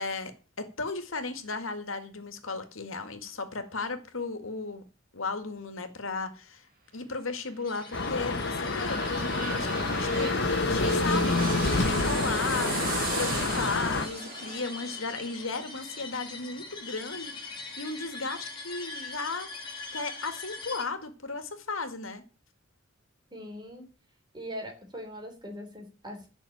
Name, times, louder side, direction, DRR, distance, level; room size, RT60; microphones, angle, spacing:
voice 1, 0.0-4.8 5.1-6.7 6.9-19.5 19.9-22.2, left 3 dB, 90° left, 2.0 m, -35 dB
sound 1, 7.5-17.2 17.6-17.7, right 4 dB, 45° right, 3.0 m, -38 dB
sound 2, 7.6-20.8, left 3 dB, 25° left, 3.6 m, -43 dB
sound 3, 7.9-14.1, left 3 dB, 60° left, 1.5 m, -28 dB
voice 2, 23.3-23.9 24.3-26.3, equal, 20° right, 3.7 m, -41 dB
12.0 x 6.2 x 8.7 m
head